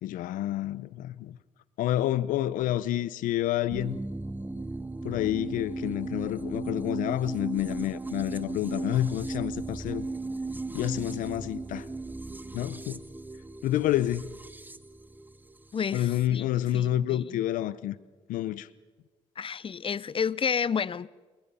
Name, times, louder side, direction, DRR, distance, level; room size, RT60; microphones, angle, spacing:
voice 1, 0.0-1.4 1.8-4.0 5.0-10.1 10.7-11.8 12.5-13.0 13.6-14.3 15.9-17.9 18.3-18.7, left 13 dB, 85° left, 0.7 m, -29 dB
sound 1, 3.7-16.2, right 2 dB, 15° right, 1.0 m, -37 dB
voice 2, 15.7-17.4 19.4-21.1, left 6 dB, 40° left, 0.7 m, -31 dB
28.5 x 20.5 x 5.5 m
supercardioid pair, 65°, 14 cm